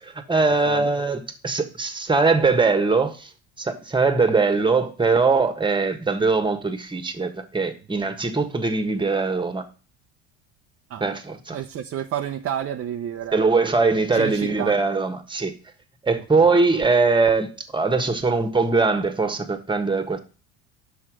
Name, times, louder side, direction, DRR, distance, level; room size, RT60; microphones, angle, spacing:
voice 1, 0.0-3.3 3.6-9.6 11.0-11.6 13.3-15.5 16.0-20.2, right 4 dB, 15° right, 1.4 m, -21 dB
voice 2, 11.5-13.5 14.1-14.8, right 10 dB, 40° right, 0.7 m, -30 dB
6.0 x 5.7 x 6.3 m
supercardioid pair, 90°, 37 cm